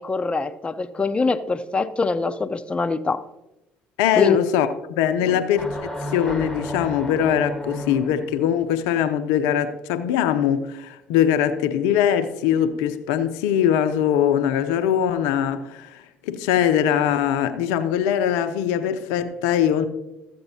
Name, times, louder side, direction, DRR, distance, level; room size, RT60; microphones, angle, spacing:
voice 1, 0.0-3.2 4.2-4.4 5.2-5.4, left 3 dB, 20° left, 0.6 m, -24 dB
voice 2, 4.0-5.7 6.1-19.9, left 9 dB, 75° left, 0.5 m, -21 dB
sound 1, 5.5-8.4, equal, ahead, 1.5 m, -32 dB
14.0 x 8.0 x 2.7 m
hypercardioid pair, 60°, 5 cm